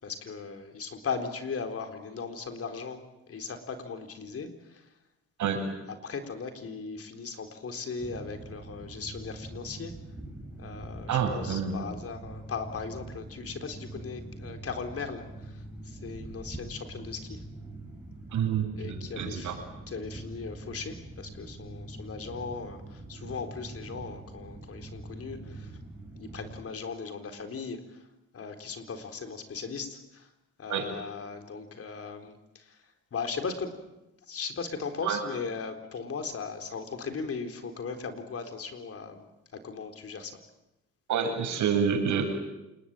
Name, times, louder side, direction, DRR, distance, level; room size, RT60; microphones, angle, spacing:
voice 1, 0.0-3.0 3.3-4.8 5.9-9.9 10.6-17.4 18.8-19.6 19.9-25.8 26.2-28.1 28.3-30.3 30.6-32.8 33.1-33.8 34.3-39.2 39.5-40.4, left 5 dB, 50° left, 7 dB, 4.1 m, -38 dB
sound 1, 8.0-26.7, right 2 dB, 5° right, 7.7 m, -44 dB
voice 2, 11.1-11.8 18.3-19.6 30.7-30.9 35.0-35.2 41.1-42.4, right 7 dB, 75° right, 2 dB, 7.8 m, -28 dB
28.5 x 20.5 x 9.1 m, 0.94 s
cardioid pair, 90°, 30 cm